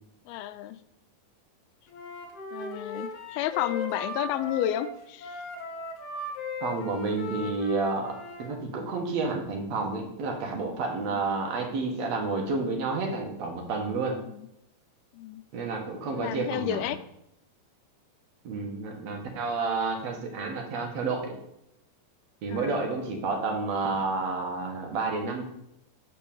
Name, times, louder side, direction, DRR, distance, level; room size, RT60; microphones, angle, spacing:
voice 1, 0.3-0.8 2.5-5.4 11.1-11.2 14.2-14.5 15.1-15.4 16.1-17.0 22.5-23.0, left 12 dB, 90° left, 12 dB, 2.4 m, -32 dB
Wind instrument woodwind instrument, 1.9-8.5, left 2 dB, 65° left, 1.6 m, -37 dB
voice 2, 6.6-8.1 8.4-14.2 15.5-16.9 18.4-21.3 22.4-25.4, right 3 dB, 60° right, 1 dB, 2.0 m, -30 dB
5.9 x 5.5 x 6.9 m, 0.80 s
omnidirectional pair, 4.3 m